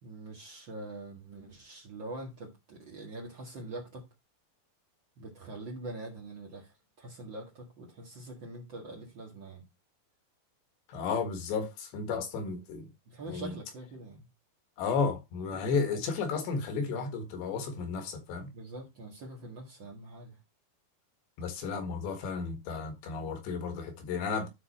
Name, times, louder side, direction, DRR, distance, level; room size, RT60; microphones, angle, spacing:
voice 1, 0.0-4.1 5.2-9.6 13.1-14.3 15.5-15.6 15.9-16.0 18.5-20.4, right 2 dB, 75° right, 1.0 m, -44 dB
voice 2, 10.9-12.9 13.3-13.6 14.8-18.5 21.4-24.5, left 5 dB, 70° left, 3.7 m, -33 dB
12.5 x 4.3 x 4.2 m
omnidirectional pair, 5.4 m